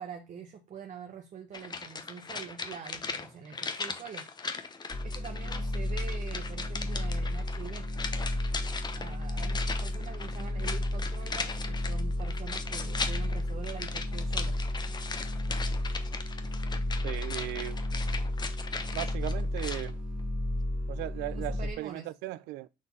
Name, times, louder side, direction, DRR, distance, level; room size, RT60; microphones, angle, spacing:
voice 1, 0.0-4.3 5.0-7.9 8.9-14.7 21.3-22.1, right 7 dB, 45° right, 1.0 m, -44 dB
sound 1, 1.5-19.9 20.2-20.3, left 4 dB, 25° left, 0.9 m, -39 dB
sound 2, 4.9-21.7, left 1 dB, 10° right, 1.5 m, -33 dB
voice 2, 17.0-17.8 18.9-20.0 20.9-22.7, right 17 dB, 90° right, 0.5 m, -37 dB
6.5 x 3.7 x 4.1 m
cardioid pair, 110°, 17 cm